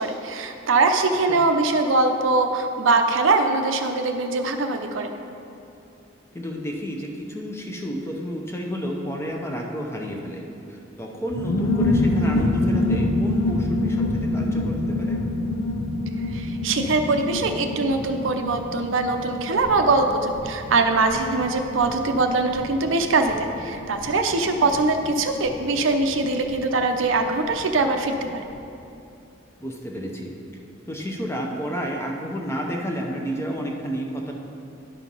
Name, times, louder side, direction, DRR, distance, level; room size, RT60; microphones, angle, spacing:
voice 1, 0.0-5.1 16.3-28.4, right 3 dB, 70° right, 5 dB, 0.6 m, -22 dB
voice 2, 6.3-10.4 10.7-15.2 24.6-24.7 29.6-30.3 30.9-34.3, equal, 15° left, 0 dB, 0.7 m, -31 dB
sound 1, 11.3-27.6 27.8-27.9 28.1-28.6, left 2 dB, 75° left, 0.7 m, -27 dB
11.0 x 4.5 x 5.4 m, 2.7 s
head